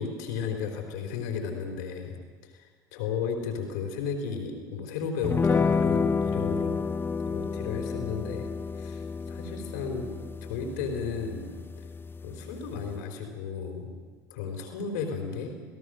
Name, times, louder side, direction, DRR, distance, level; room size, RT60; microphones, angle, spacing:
voice 1, 0.0-2.2 2.6-6.9 7.2-10.1 10.4-11.5 12.2-13.9 14.3-15.5, left 6 dB, 70° left, 4 dB, 4.1 m, -34 dB
sound 1, 5.2-13.0, left 5 dB, 20° left, 0.6 m, -30 dB
27.0 x 17.5 x 6.5 m, 1.5 s
hypercardioid pair, 65°, 10 cm